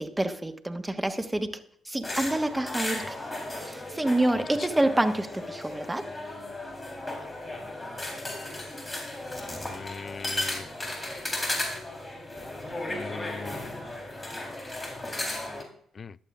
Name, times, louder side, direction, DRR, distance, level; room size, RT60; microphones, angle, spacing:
voice 1, 0.0-1.5 1.9-3.2 3.6-6.1, right 1 dB, 15° right, 7 dB, 1.3 m, -27 dB
sound 1, 2.0-15.6, left 1 dB, 25° left, 3.7 m, -35 dB
voice 2, 9.7-10.7 12.9-13.7 16.0-16.2, left 5 dB, 45° left, 20 dB, 0.3 m, -40 dB
14.5 x 11.0 x 2.5 m, 0.62 s
figure-of-eight pair, 40°, 0 cm